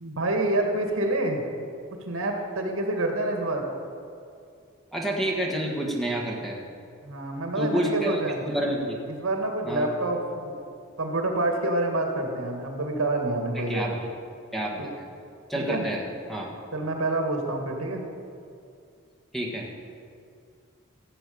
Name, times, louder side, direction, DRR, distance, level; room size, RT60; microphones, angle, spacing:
voice 1, 0.0-1.4 2.0-3.7 7.0-8.4 9.1-10.6 11.0-14.0 14.8-14.9 15.5-15.9 16.7-18.0, right 2 dB, 80° right, 2 dB, 2.0 m, -27 dB
voice 2, 4.9-6.6 7.6-8.2 8.4-9.0 9.7-9.9 13.5-13.9 14.5-14.9 15.5-16.0 16.3-16.5 19.3-19.7, right 1 dB, ahead, -2 dB, 1.5 m, -28 dB
15.5 x 7.9 x 6.8 m, 2.4 s
head